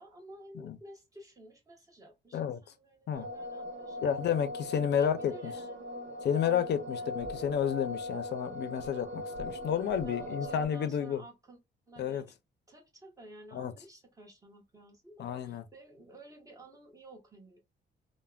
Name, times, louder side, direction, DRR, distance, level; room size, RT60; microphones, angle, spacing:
voice 1, 0.0-4.2 4.9-5.9 6.5-7.1 10.0-11.6 11.9-12.3 12.7-17.6, right 1 dB, 15° right, 1.3 m, -53 dB
sound 1, 3.1-10.7, left 1 dB, 65° right, 1.1 m, -40 dB
voice 2, 4.0-5.5 6.2-11.2 12.0-12.2 13.5-13.7 15.2-15.6, left 8 dB, 60° left, 0.5 m, -31 dB
3.3 x 2.1 x 2.3 m
cardioid pair, 90°, 20 cm